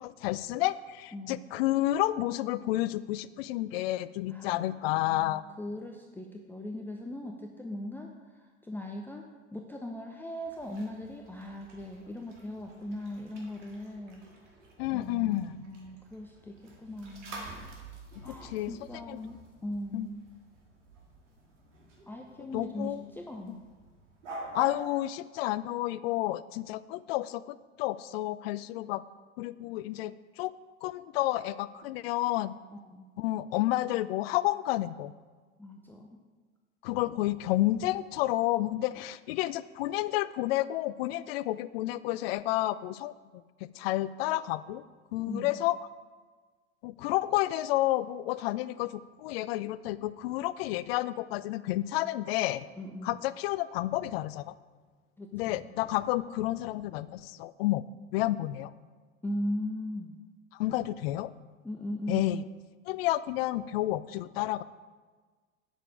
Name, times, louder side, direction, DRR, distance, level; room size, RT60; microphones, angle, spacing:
voice 1, 0.0-5.4 14.8-15.7 18.2-18.7 19.1-19.2 19.9-20.1 22.5-23.0 24.5-29.0 29.4-30.5 30.8-32.5 33.2-35.1 36.8-43.1 43.6-44.8 45.1-45.8 46.8-52.7 53.0-54.5 55.3-57.8 58.1-58.7 60.5-61.3 62.1-62.4 62.9-64.6, left 16 dB, 55° left, 17 dB, 0.5 m, -30 dB
voice 2, 4.3-9.3 9.5-14.2 14.9-17.5 18.2-20.3 22.1-23.7 32.7-33.1 35.6-36.2 45.3-45.5 52.8-53.1 55.2-55.6 59.2-60.2 61.6-62.5, left 1 dB, 5° left, 1 dB, 0.7 m, -39 dB
sound 1, 10.4-24.9, right 2 dB, 75° right, 2.3 m, -49 dB
9.0 x 6.7 x 5.1 m, 1.4 s
hypercardioid pair, 85°, 36 cm